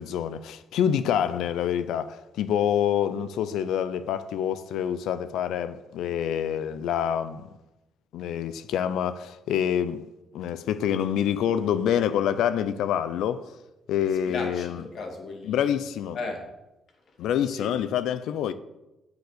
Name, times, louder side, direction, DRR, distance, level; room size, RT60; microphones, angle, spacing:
voice 1, 0.0-7.5 8.1-10.0 10.3-13.5 13.9-14.8 15.5-16.2 17.2-18.5, left 9 dB, 85° left, 0.5 m, -26 dB
voice 2, 14.3-15.7 16.1-16.5 17.1-17.2 17.4-17.8, left 3 dB, 65° left, 2.2 m, -36 dB
7.8 x 7.0 x 6.7 m
cardioid pair, 90°, 0 cm